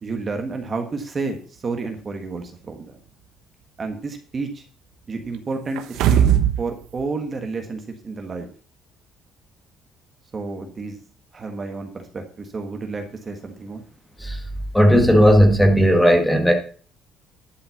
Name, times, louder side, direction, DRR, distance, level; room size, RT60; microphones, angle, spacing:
voice 1, 0.0-3.0 3.8-4.6 5.1-6.3 6.6-8.5 10.3-11.0 11.3-13.8, right 3 dB, 25° right, 1.4 m, -30 dB
sound 1, 5.8-6.6 7.0-7.1, right 9 dB, 90° right, 1.1 m, -17 dB
voice 2, 14.7-16.5, equal, 5° left, 1.7 m, -15 dB
11.5 x 5.7 x 7.1 m
cardioid pair, 165°, 0 cm